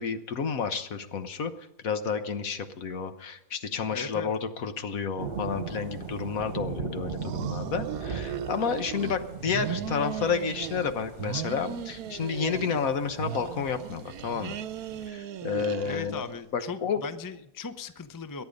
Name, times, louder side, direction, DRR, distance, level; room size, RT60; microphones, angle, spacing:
voice 1, 0.0-1.5 1.8-14.6 15.1-16.2 16.5-17.0, left 6 dB, 70° left, 9 dB, 1.5 m, -30 dB
voice 2, 3.9-4.3 15.8-18.4, left 5 dB, 25° left, 11 dB, 0.4 m, -38 dB
sound 1, 5.2-15.1, right 6 dB, 45° right, 1.2 m, -39 dB
sound 2, 7.1-9.2 9.5-10.9 11.2-12.9 13.2-16.4, right 10 dB, 80° right, 1.2 m, -37 dB
22.5 x 9.7 x 5.2 m, 0.85 s
omnidirectional pair, 1.5 m